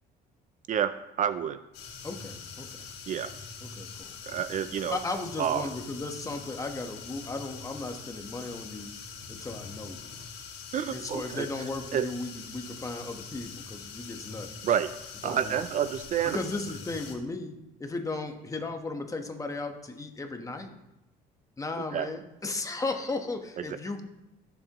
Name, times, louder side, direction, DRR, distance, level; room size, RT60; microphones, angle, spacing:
voice 1, 0.7-1.6 3.1-3.3 4.3-5.0 5.4-5.7 10.7-11.5 11.9-12.1 14.6-14.9 15.2-16.4 21.9-22.1, right 9 dB, 50° right, 12 dB, 0.5 m, -28 dB
sound 1, 1.7-17.1, left 5 dB, 80° left, 2.1 m, -44 dB
voice 2, 2.0-2.9 3.6-4.2 4.9-9.0 9.3-10.1 10.9-14.7 15.2-15.6 16.3-17.5 17.8-20.7 21.6-24.0, left 3 dB, 20° left, 4 dB, 1.2 m, -36 dB
15.5 x 7.2 x 3.0 m, 0.91 s
cardioid pair, 110°, 17 cm